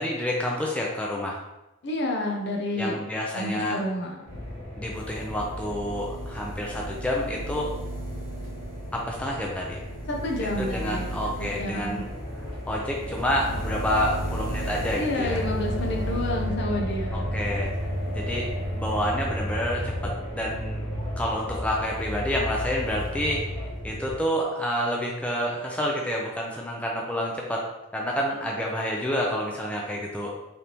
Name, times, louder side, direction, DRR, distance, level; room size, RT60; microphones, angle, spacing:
voice 1, 0.0-1.4 2.7-3.8 4.8-7.7 9.1-9.8 10.6-12.1 12.7-15.4 17.1-17.7 18.1-18.5 18.8-20.8 21.2-27.6 27.9-30.3, equal, 5° left, -2 dB, 0.4 m, -29 dB
voice 2, 1.8-3.0 3.3-4.3 10.1-11.3 11.6-12.0 15.0-17.3, left 1 dB, 55° left, 1 dB, 0.6 m, -29 dB
sound 1, 4.3-24.1, equal, 70° left, 1.5 m, -33 dB
sound 2, 4.9-17.9 18.2-19.2, right 1 dB, 10° right, 1.2 m, -38 dB
3.9 x 3.4 x 2.9 m, 0.97 s
head